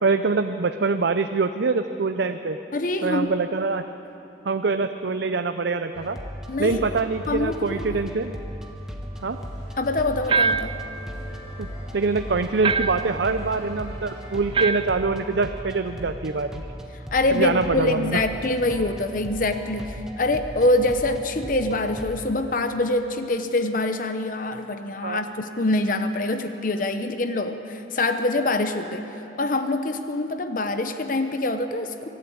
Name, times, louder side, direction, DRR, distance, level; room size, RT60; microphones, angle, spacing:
voice 1, 0.0-2.6 3.0-3.9 4.4-6.2 6.6-8.3 9.2-9.4 11.6-11.7 11.9-16.7 17.3-18.2 25.0-25.2, right 4 dB, 80° right, 8 dB, 0.6 m, -24 dB
voice 2, 2.7-3.3 6.5-6.8 7.3-8.0 9.8-10.7 17.1-29.1 29.4-32.1, left 2 dB, 50° left, 8 dB, 0.9 m, -25 dB
sound 1, 5.9-22.2, equal, 5° right, 1.5 m, -37 dB
sound 2, 9.1-15.5, equal, 20° left, 5.6 m, -47 dB
sound 3, 10.3-10.8 12.6-13.1 14.5-15.0, right 5 dB, 30° right, 0.4 m, -23 dB
24.5 x 12.5 x 8.6 m, 2.9 s
head